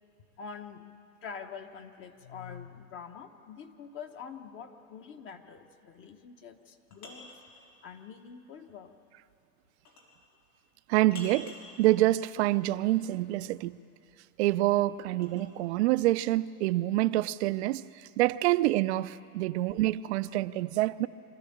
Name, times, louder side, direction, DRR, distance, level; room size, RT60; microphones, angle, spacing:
voice 1, 0.4-0.9 1.2-7.3 7.8-8.9, left 6 dB, 25° left, 1.1 m, -45 dB
sound 1, 6.5-7.5 9.8-10.2 11.1-11.7 14.0-15.5, left 3 dB, 75° left, 5.1 m, -48 dB
voice 2, 10.9-11.5 11.8-13.8 14.4-17.8 18.2-21.1, right 16 dB, 50° right, 0.6 m, -26 dB
25.5 x 13.5 x 8.7 m
hypercardioid pair, 130°, 44 cm